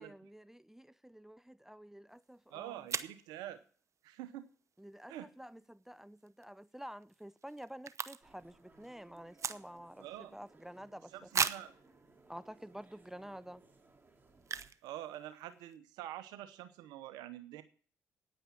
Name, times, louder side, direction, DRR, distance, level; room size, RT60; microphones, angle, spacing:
voice 1, 0.0-2.9 4.8-10.1 10.3-11.1 12.3-13.6, equal, 5° right, 0.5 m, -50 dB
sound 1, 2.2-2.3 2.9-3.2 6.2-6.4 6.7-6.8 7.0-8.5 8.8-10.0 10.5-10.6 11.3-11.8 12.5-12.6 13.1-13.2 14.4-14.9 15.1-15.2 15.4-15.7, right 6 dB, 45° right, 0.8 m, -37 dB
voice 2, 2.5-3.6 4.0-4.5 5.1-5.3 10.0-10.4 11.1-11.8 14.8-17.6, right 13 dB, 75° right, 0.9 m, -46 dB
sound 2, 8.2-14.7, right 3 dB, 25° right, 2.9 m, -63 dB
9.5 x 9.0 x 8.7 m
hypercardioid pair, 50°, 7 cm